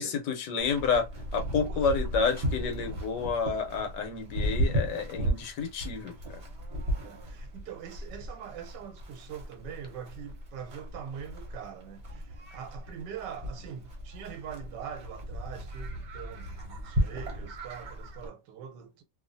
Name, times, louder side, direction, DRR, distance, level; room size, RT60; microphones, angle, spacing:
voice 1, 0.0-6.4, left 5 dB, 80° left, 1.3 m, -30 dB
Livestock farm animals working animals, 0.6-18.3, equal, 50° right, 1.0 m, -35 dB
voice 2, 7.0-19.0, right 8 dB, 80° right, 1.3 m, -43 dB
2.9 x 2.4 x 2.5 m
omnidirectional pair, 1.9 m